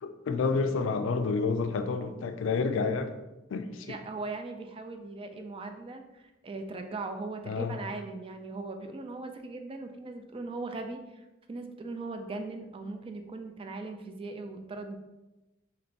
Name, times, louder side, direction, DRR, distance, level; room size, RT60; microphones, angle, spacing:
voice 1, 0.0-3.1 3.5-4.0 7.5-7.8, left 4 dB, 75° left, 9 dB, 0.4 m, -29 dB
voice 2, 3.8-15.0, right 3 dB, 30° right, 5 dB, 0.3 m, -39 dB
3.0 x 2.6 x 4.3 m, 1.0 s
head